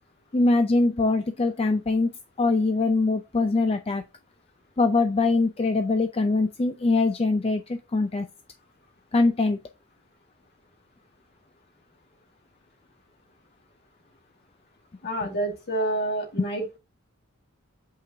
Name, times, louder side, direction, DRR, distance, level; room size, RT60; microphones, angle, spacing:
voice 1, 0.3-2.1 2.4-4.0 4.8-8.3 9.1-9.6, left 3 dB, 30° left, 0.5 m, -23 dB
voice 2, 15.0-16.8, right 1 dB, 50° left, 2.0 m, -28 dB
8.2 x 4.9 x 2.7 m
head